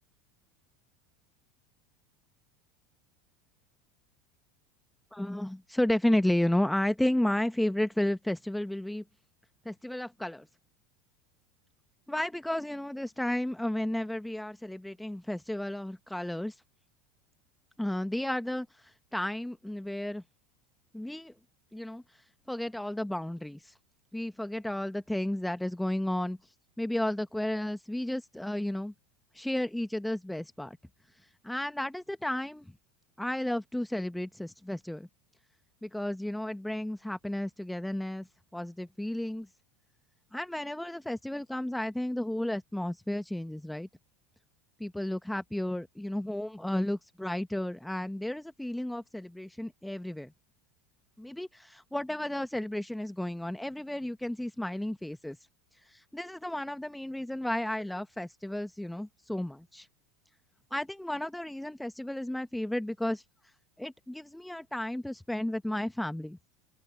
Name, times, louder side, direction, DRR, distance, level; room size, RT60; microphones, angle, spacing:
voice 1, 5.1-9.0 9.6-10.5 12.1-16.6 17.8-20.2 20.9-21.3 21.7-22.0 22.5-23.7 24.1-26.4 26.8-28.9 29.3-30.8 31.4-32.7 33.2-35.1 35.8-38.3 38.5-39.5 40.3-43.9 44.8-50.3 51.2-55.4 55.9-59.9 60.7-63.2 63.8-66.4, left 1 dB, 5° left, 1.5 m, -33 dB
open air
figure-of-eight pair, 75°, 0 cm